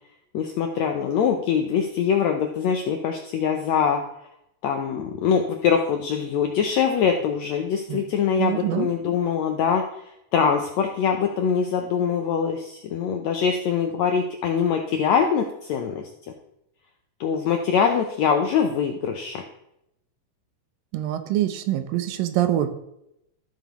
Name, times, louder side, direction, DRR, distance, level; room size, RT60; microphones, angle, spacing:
voice 1, 0.3-4.0 4.6-9.8 10.3-16.0 17.2-19.4, left 7 dB, 80° left, 4 dB, 1.6 m, -23 dB
voice 2, 8.4-8.9 20.9-22.7, right 12 dB, 85° right, 10 dB, 2.5 m, -24 dB
13.5 x 7.0 x 3.0 m, 0.81 s
omnidirectional pair, 4.0 m